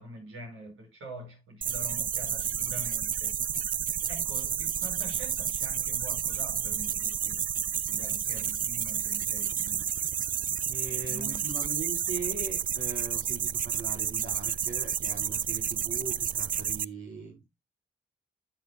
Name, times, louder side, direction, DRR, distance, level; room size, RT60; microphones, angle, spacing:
voice 1, 0.0-3.4 4.1-7.4 7.8-9.9 11.1-11.5, right 1 dB, 75° right, 5.4 m, -45 dB
sound 1, 1.6-16.8, right 9 dB, 40° right, 0.4 m, -31 dB
voice 2, 10.7-17.4, right 3 dB, 60° right, 3.8 m, -40 dB
13.0 x 6.0 x 2.3 m
supercardioid pair, 45°, 21 cm